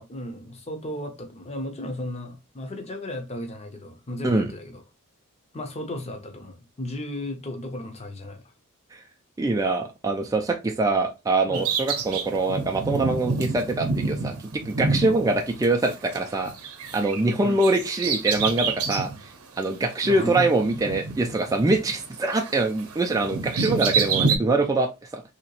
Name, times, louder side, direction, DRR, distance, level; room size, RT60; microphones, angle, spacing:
voice 1, 0.0-4.8 5.5-8.4 11.5-11.6 17.4-17.6 20.0-20.5, left 1 dB, 30° left, 0.6 m, -34 dB
voice 2, 9.4-14.4 14.7-16.5 16.9-19.1 19.6-25.2, right 2 dB, 15° right, 0.3 m, -24 dB
Bird vocalization bird call bird song, 11.5-16.2 16.4-19.2 19.6-19.7 20.6-22.1 22.3-24.4, right 4 dB, 70° right, 0.7 m, -27 dB
3.0 x 2.8 x 2.9 m
head